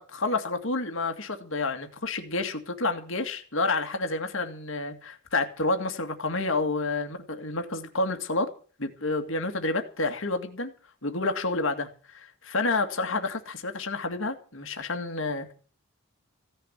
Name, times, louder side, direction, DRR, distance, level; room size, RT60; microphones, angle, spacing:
voice 1, 0.0-8.5 8.8-10.7 11.0-15.5, left 3 dB, 60° left, 2.1 m, -29 dB
16.5 x 7.0 x 9.9 m
head